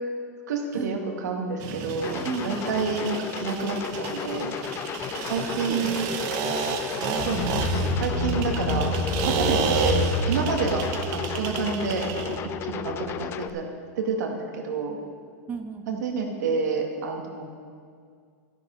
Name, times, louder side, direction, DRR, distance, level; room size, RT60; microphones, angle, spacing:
voice 1, 0.5-4.6 5.3-6.1 7.2-8.9 9.2-10.9 11.1-12.4 12.6-13.6 14.0-15.0 15.9-17.4, right 5 dB, 85° right, 2 dB, 2.2 m, -29 dB
sound 1, 1.6-12.4, right 7 dB, 40° right, 1.1 m, -32 dB
sound 2, 2.0-13.5, left 9 dB, 25° left, 0.5 m, -34 dB
voice 2, 2.2-2.9 4.0-4.5 5.5-6.4 15.5-16.0, right 5 dB, 20° right, 5 dB, 0.7 m, -36 dB
sound 3, 7.2-13.2, left 1 dB, 65° left, 3.7 m, -29 dB
12.5 x 11.0 x 5.5 m, 2.1 s
supercardioid pair, 145°, 9 cm